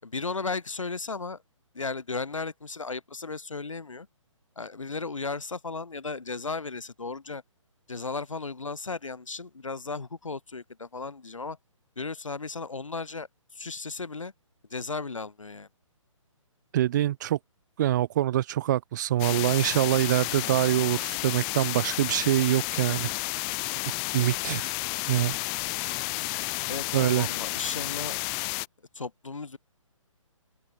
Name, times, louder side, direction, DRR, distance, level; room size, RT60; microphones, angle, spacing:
voice 1, 0.0-1.4 1.7-4.1 4.5-7.4 7.9-11.6 11.9-13.3 13.5-14.3 14.7-15.7 26.7-28.2 28.9-29.6, left 4 dB, 70° left, 6.8 m, -35 dB
voice 2, 16.7-17.4 17.8-23.1 24.1-24.7 25.1-25.4 26.9-27.3, right 13 dB, 35° right, 2.1 m, -25 dB
sound 1, 19.2-28.7, left 40 dB or more, 15° left, 0.4 m, -31 dB
open air
figure-of-eight pair, 135°, 17 cm